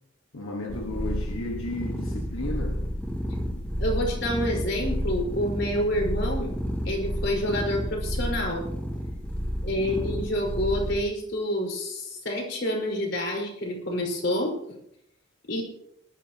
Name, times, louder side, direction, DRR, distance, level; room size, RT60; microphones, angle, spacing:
voice 1, 0.3-2.8 9.8-10.1, left 1 dB, 90° left, 1.6 m, -34 dB
sound 1, 0.7-11.0, equal, 10° left, 2.5 m, -31 dB
voice 2, 3.8-6.5 6.8-8.6 9.6-14.6 15.5-15.6, equal, 60° left, 4.9 m, -28 dB
20.5 x 12.5 x 3.0 m
head